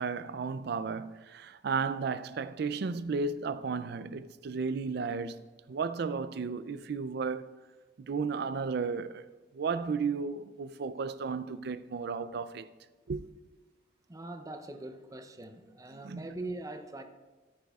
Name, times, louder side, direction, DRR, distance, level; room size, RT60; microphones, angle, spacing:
voice 1, 0.0-5.4 5.7-7.5 8.0-9.2 9.5-12.7 13.1-13.2 16.0-16.2, right 5 dB, 65° right, 0.4 m, -33 dB
voice 2, 14.1-17.0, right 2 dB, 20° right, 0.6 m, -42 dB
14.0 x 10.5 x 2.4 m
head